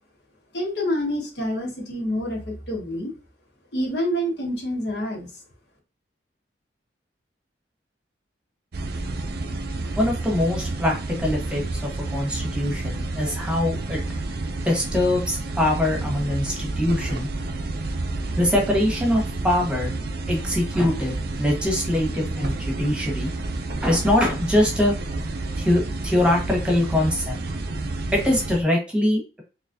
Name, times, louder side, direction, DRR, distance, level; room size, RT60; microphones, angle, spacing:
voice 1, 0.5-3.1 3.7-5.4, equal, 65° left, -2 dB, 1.5 m, -27 dB
sound 1, 8.7-28.6, right 2 dB, 60° right, 0.5 m, -30 dB
voice 2, 10.0-14.0 14.6-17.3 18.4-19.9 20.3-23.3 23.8-24.9 25.6-27.4 28.1-29.4, left 1 dB, 5° right, 0 dB, 1.2 m, -23 dB
4.0 x 3.1 x 2.6 m, 0.32 s
head